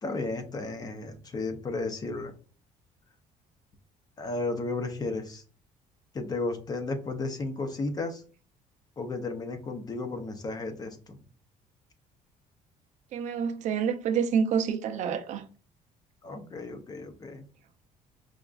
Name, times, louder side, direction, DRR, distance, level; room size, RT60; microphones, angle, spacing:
voice 1, 0.0-2.3 4.2-5.4 6.1-8.2 9.0-11.2 16.2-17.5, left 3 dB, 30° left, 0.5 m, -33 dB
voice 2, 13.1-15.5, right 7 dB, 60° right, 0.4 m, -28 dB
4.8 x 2.4 x 2.3 m
cardioid pair, 155°, 14 cm